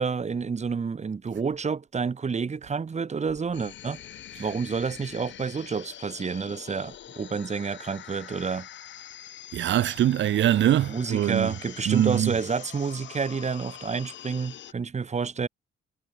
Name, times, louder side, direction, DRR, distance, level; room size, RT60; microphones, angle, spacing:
voice 1, 0.0-4.0 4.4-8.7 10.9-15.5, right 5 dB, 35° right, 2.6 m, -29 dB
sound 1, 3.5-14.7, left 11 dB, 70° left, 1.9 m, -44 dB
voice 2, 9.5-11.5 11.8-12.4, right 12 dB, 70° right, 1.5 m, -23 dB
cardioid pair, 90°, 20 cm